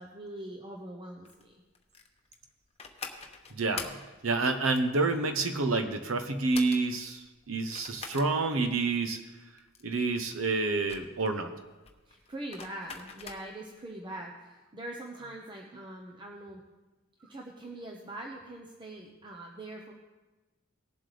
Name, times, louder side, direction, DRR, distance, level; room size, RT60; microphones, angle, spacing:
voice 1, 0.0-1.6 12.1-16.6 17.2-19.9, right 1 dB, 25° right, 0 dB, 0.8 m, -43 dB
sound 1, 1.2-13.7, left 5 dB, 30° left, 0.9 m, -45 dB
voice 2, 3.5-9.2 9.8-11.5, right 3 dB, 75° right, 7 dB, 0.8 m, -29 dB
18.5 x 7.6 x 3.3 m, 1.2 s
head